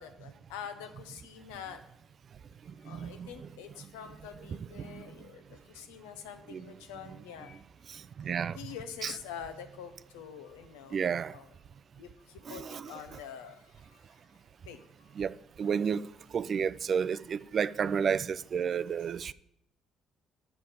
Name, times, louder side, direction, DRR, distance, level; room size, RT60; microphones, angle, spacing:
voice 1, 0.0-1.8 2.8-7.6 8.5-11.0 11.3-11.5 12.0-14.0 14.7-15.1, left 8 dB, 85° left, 0.7 m, -46 dB
voice 2, 2.8-3.3 4.8-5.0 6.5-6.6 7.9-8.6 9.0-9.1 10.9-11.3 12.5-12.9 15.2-16.1 16.3-19.3, right 7 dB, 50° right, 0.3 m, -31 dB
6.9 x 5.8 x 6.5 m
hypercardioid pair, 60°, 0 cm